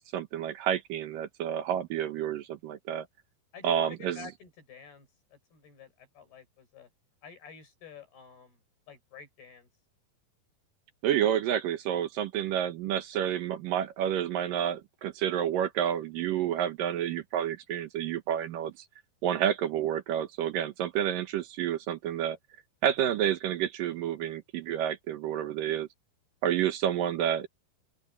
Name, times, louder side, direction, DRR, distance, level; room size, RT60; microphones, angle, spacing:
voice 1, 0.1-3.1 3.6-4.3 11.0-18.9 19.2-22.4 22.8-25.9 26.4-27.5, right 10 dB, 70° right, 2.6 m, -29 dB
voice 2, 3.5-6.9 7.2-8.6 8.9-9.7, left 7 dB, 80° left, 8.6 m, -49 dB
open air
omnidirectional pair, 4.5 m